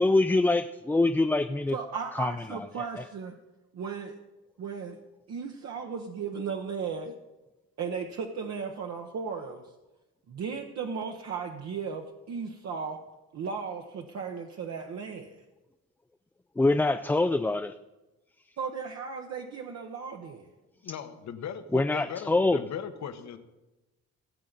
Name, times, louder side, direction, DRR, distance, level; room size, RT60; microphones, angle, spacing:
voice 1, 0.0-1.8 2.2-2.7 16.6-17.7 21.7-22.6, left 2 dB, 5° left, 8 dB, 0.3 m, -24 dB
voice 2, 1.7-3.4 3.7-4.2 4.6-5.0 5.3-7.1 7.8-9.7 10.3-13.0 13.3-15.3 18.6-20.5, right 6 dB, 60° right, 2 dB, 1.0 m, -36 dB
voice 3, 20.8-23.4, left 8 dB, 65° left, 8 dB, 1.1 m, -38 dB
17.5 x 7.6 x 4.0 m, 1.1 s
cardioid pair, 90°, 30 cm